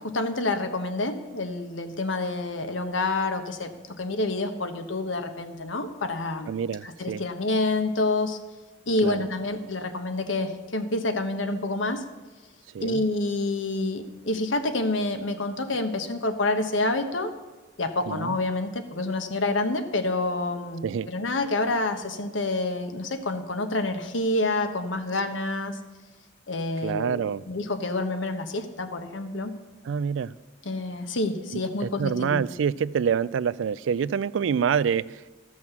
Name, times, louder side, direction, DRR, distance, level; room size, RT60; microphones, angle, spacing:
voice 1, 0.0-6.5 6.8-8.4 8.9-12.0 12.8-17.3 17.8-25.8 26.5-29.5 30.6-32.4, left 2 dB, 85° left, 7 dB, 1.1 m, -28 dB
voice 2, 6.5-7.2 9.0-9.2 12.7-13.0 18.1-18.4 20.8-21.1 26.8-27.4 29.8-30.3 31.5-35.3, right 7 dB, 80° right, 19 dB, 0.3 m, -27 dB
13.5 x 6.3 x 7.1 m, 1.3 s
head